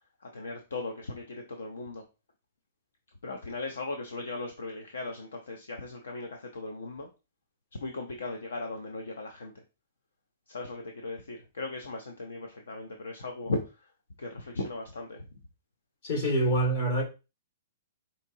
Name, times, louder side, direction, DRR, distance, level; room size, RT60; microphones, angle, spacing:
voice 1, 0.2-2.0 3.2-7.1 7.8-9.5 10.5-13.9 14.2-15.2, left 2 dB, 80° left, 0.6 m, -37 dB
voice 2, 16.0-17.0, right 1 dB, 60° left, 2.0 m, -26 dB
5.0 x 2.8 x 2.7 m
hypercardioid pair, 125°, 0 cm